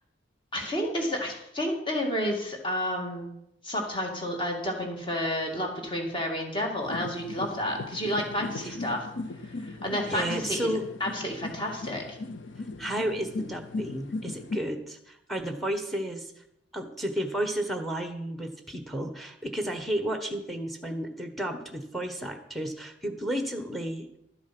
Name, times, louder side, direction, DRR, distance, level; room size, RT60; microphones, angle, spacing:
voice 1, 0.5-3.3 3.6-9.1 9.4-10.7 11.0-12.2, left 1 dB, 25° left, 1 dB, 2.1 m, -30 dB
sound 1, 6.8-14.6, left 2 dB, 80° left, 0.6 m, -37 dB
voice 2, 10.1-10.8 12.8-16.3 16.7-24.1, right 1 dB, ahead, 7 dB, 1.2 m, -32 dB
12.5 x 7.3 x 6.0 m, 0.79 s
head